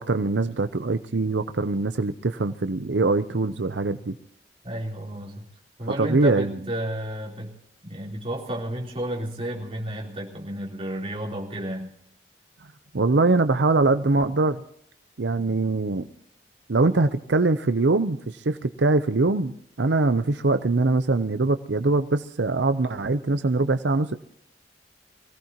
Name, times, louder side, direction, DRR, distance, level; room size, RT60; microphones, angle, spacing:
voice 1, 0.0-4.2 6.0-6.5 12.9-14.6 15.2-16.1 16.7-24.1, right 3 dB, 90° right, 10 dB, 0.7 m, -23 dB
voice 2, 4.6-5.4 5.8-7.6 7.8-11.9, right 1 dB, 35° right, -1 dB, 3.7 m, -32 dB
23.5 x 17.0 x 3.0 m, 0.69 s
head